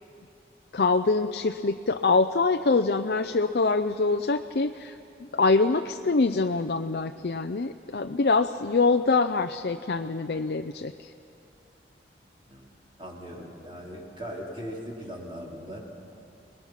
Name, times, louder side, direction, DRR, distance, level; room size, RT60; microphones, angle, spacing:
voice 1, 0.7-5.0 5.3-11.1, left 3 dB, 60° left, 7 dB, 0.5 m, -24 dB
voice 2, 13.0-15.8, equal, 30° right, -3 dB, 3.8 m, -39 dB
29.5 x 20.5 x 5.8 m, 2.8 s
head